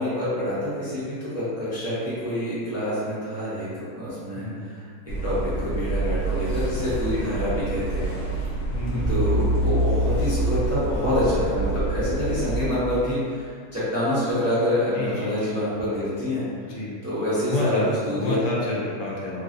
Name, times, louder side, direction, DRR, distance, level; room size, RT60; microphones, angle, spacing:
voice 1, 0.0-4.8 5.2-8.5 8.9-16.4 17.0-17.8 18.0-18.4, left 1 dB, 20° right, -12 dB, 0.4 m, -27 dB
voice 2, 4.3-4.7 7.1-7.3 8.7-9.6 14.9-15.6 16.6-17.0 17.5-17.9 18.1-19.4, left 2 dB, 70° left, -5 dB, 1.0 m, -29 dB
sound 1, 5.1-12.7, right 2 dB, 50° left, 0.7 m, -26 dB
3.0 x 2.6 x 2.5 m, 2.1 s
omnidirectional pair, 1.6 m